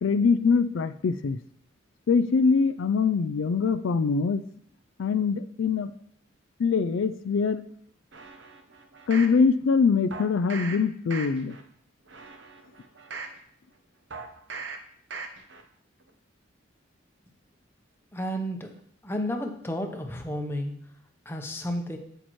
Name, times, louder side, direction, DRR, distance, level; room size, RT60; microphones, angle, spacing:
voice 1, 0.0-1.4 2.1-4.4 5.0-5.9 6.6-7.7 9.1-11.6, left 5 dB, 70° left, 11 dB, 0.4 m, -23 dB
sound 1, 8.1-9.4 10.1-10.8 11.1-11.6 12.1-13.4 14.1-14.8 15.1-15.6 16.0-16.1, right 4 dB, 60° right, 0.9 m, -39 dB
voice 2, 18.1-18.7 19.0-20.7 21.3-22.0, equal, 10° left, 3 dB, 0.8 m, -32 dB
8.2 x 7.9 x 3.1 m, 0.65 s
head